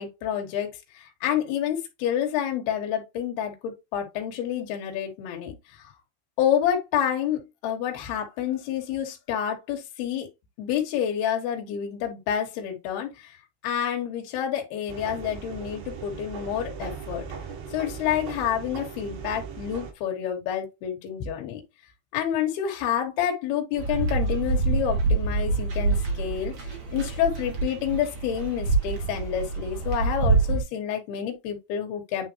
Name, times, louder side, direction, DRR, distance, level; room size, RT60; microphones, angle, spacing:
voice 1, 0.0-5.6 6.4-10.3 10.6-13.4 13.6-17.2 17.7-21.6 22.1-26.5 26.9-32.3, left 9 dB, 70° left, 3.1 m, -28 dB
sound 1, 14.9-19.9, right 6 dB, 70° right, 3.8 m, -38 dB
sound 2, 23.8-30.6, right 3 dB, 40° right, 2.7 m, -26 dB
9.5 x 3.6 x 2.9 m
omnidirectional pair, 4.9 m